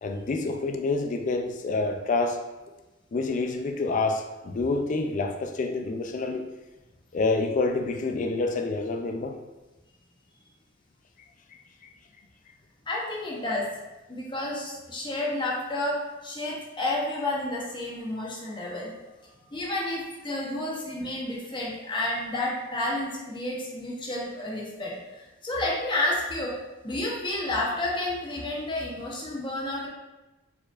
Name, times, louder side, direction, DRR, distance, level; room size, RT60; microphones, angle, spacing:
voice 1, 0.0-2.4 3.1-6.5 7.1-9.4, left 3 dB, 40° left, 5 dB, 0.3 m, -27 dB
voice 2, 12.9-13.7 14.1-18.9 19.5-26.5 26.8-29.9, left 1 dB, 25° left, -3 dB, 0.9 m, -30 dB
4.5 x 4.3 x 2.4 m, 1.1 s
head